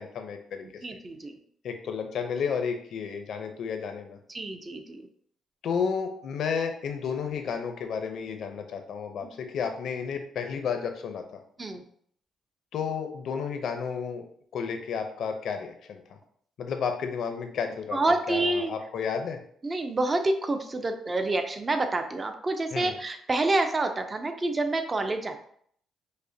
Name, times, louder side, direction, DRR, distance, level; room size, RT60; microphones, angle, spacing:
voice 1, 0.0-0.7 1.6-4.2 5.6-11.2 12.7-14.2 14.5-16.0 16.6-19.4 22.7-23.0, left 6 dB, 70° left, 6 dB, 0.6 m, -32 dB
voice 2, 0.8-1.3 4.3-5.1 11.6-11.8 17.9-18.7 19.6-25.4, right 2 dB, 30° right, 6 dB, 0.5 m, -28 dB
5.2 x 2.1 x 2.7 m, 0.63 s
cardioid pair, 90°, 0 cm